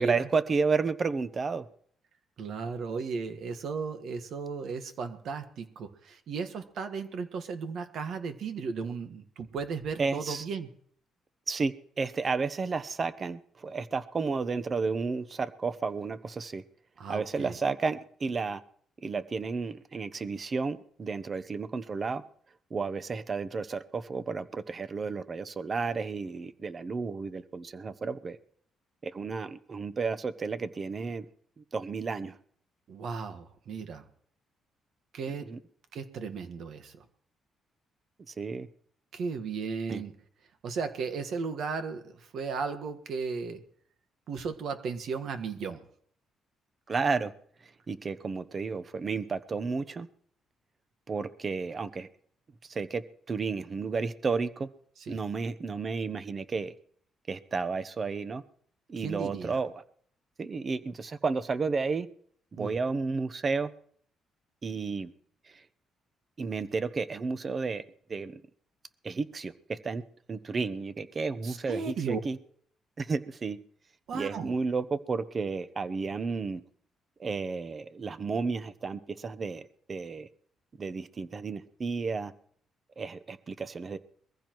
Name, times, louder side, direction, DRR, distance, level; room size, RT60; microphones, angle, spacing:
voice 1, 0.0-1.7 10.0-10.4 11.5-16.6 17.1-18.6 19.0-22.2 22.7-28.4 29.0-31.3 31.6-32.3 35.5-35.6 38.3-38.7 39.9-40.0 46.9-47.3 47.9-50.1 51.1-52.1 52.6-53.0 53.3-54.7 55.1-56.7 57.3-58.4 58.9-59.7 60.4-62.1 62.5-63.7 64.6-65.1 66.4-67.8 68.1-68.4 69.0-70.0 70.3-72.4 73.0-73.6 74.1-76.6 77.2-80.3 80.8-82.3 83.0-84.0, right 4 dB, 40° right, 12 dB, 0.8 m, -32 dB
voice 2, 2.4-10.7 17.0-17.5 32.9-34.1 35.1-35.5 35.9-37.0 39.1-40.1 40.6-43.6 44.3-45.8 55.0-55.2 59.0-59.6 62.6-62.7 71.4-72.2 74.1-74.5, right 5 dB, 70° right, 9 dB, 1.5 m, -35 dB
22.5 x 15.0 x 3.1 m, 0.62 s
cardioid pair, 90°, 0 cm